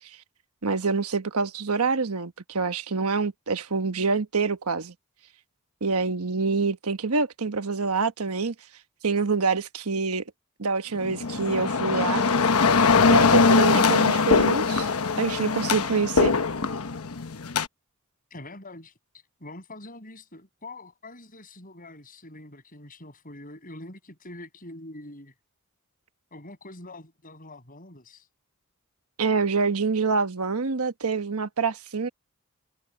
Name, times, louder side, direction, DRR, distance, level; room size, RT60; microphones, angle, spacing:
voice 1, 0.6-4.9 5.8-8.5 9.0-10.2 10.6-12.2 13.1-14.9 15.2-16.3 29.2-32.1, right 4 dB, 85° right, 1.2 m, -26 dB
sound 1, 11.0-17.7, left 4 dB, 85° left, 1.0 m, -21 dB
voice 2, 18.3-18.9 19.4-25.3 26.3-28.3, left 2 dB, 40° left, 6.5 m, -44 dB
head